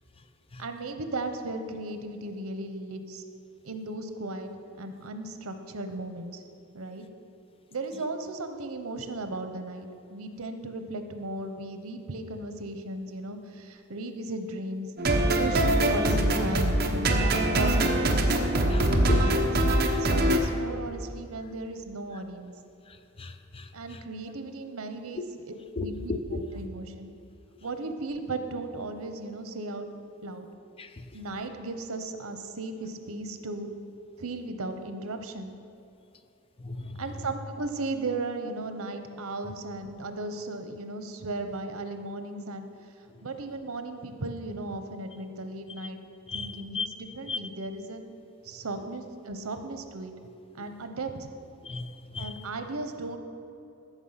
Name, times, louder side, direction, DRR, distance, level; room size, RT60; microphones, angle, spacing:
voice 1, 0.6-3.2 3.6-4.5 4.8-6.4 6.7-7.0 7.7-14.9 15.4-18.2 18.9-19.5 20.0-22.5 23.7-25.5 25.8-27.1 27.6-29.9 30.2-30.5 31.1-33.7 34.2-35.5 37.0-42.7 43.2-46.0 46.3-48.0 48.4-50.1 50.5-51.3 52.2-53.2, right 2 dB, 85° right, 7 dB, 0.9 m, -36 dB
sound 1, 15.0-20.4, right 1 dB, 45° right, 1.0 m, -23 dB
voice 2, 18.7-19.3 19.9-20.0 23.2-24.0 25.2-25.3 25.8-26.5 30.8-31.0 36.6-37.0 46.3-46.9 47.3-47.4 51.6-52.3, left 3 dB, 25° left, 9 dB, 0.5 m, -35 dB
14.0 x 6.2 x 5.8 m, 2.8 s
head